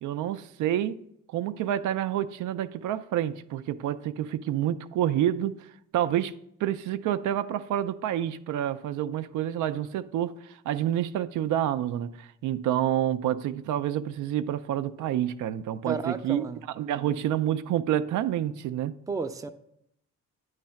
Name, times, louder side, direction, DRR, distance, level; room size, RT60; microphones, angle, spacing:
voice 1, 0.0-1.0 1.3-5.7 5.9-16.5 16.8-19.0, right 11 dB, 80° right, 0.5 m, -28 dB
voice 2, 15.8-16.6 19.1-19.5, right 4 dB, 10° right, 0.4 m, -32 dB
9.2 x 3.2 x 5.7 m
cardioid pair, 90°, 30 cm